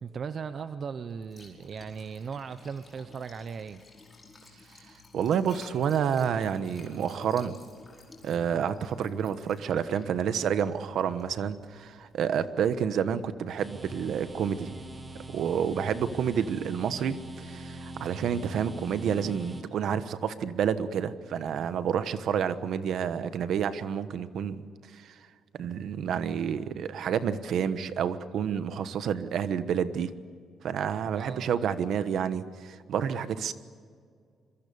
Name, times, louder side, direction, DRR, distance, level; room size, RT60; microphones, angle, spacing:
voice 1, 0.0-3.8 31.0-31.5, right 6 dB, 40° right, 11 dB, 0.7 m, -38 dB
Liquid, 1.1-12.3, left 3 dB, 20° left, 4.9 m, -54 dB
voice 2, 5.1-7.6 8.2-14.8 15.3-24.6 24.9-25.1 25.5-30.1 30.6-33.5, right 8 dB, 60° right, 12 dB, 1.2 m, -29 dB
sound 1, 13.6-19.6, right 1 dB, 20° right, 1.9 m, -42 dB
26.5 x 23.0 x 7.0 m, 2.1 s
cardioid pair, 175°, 0 cm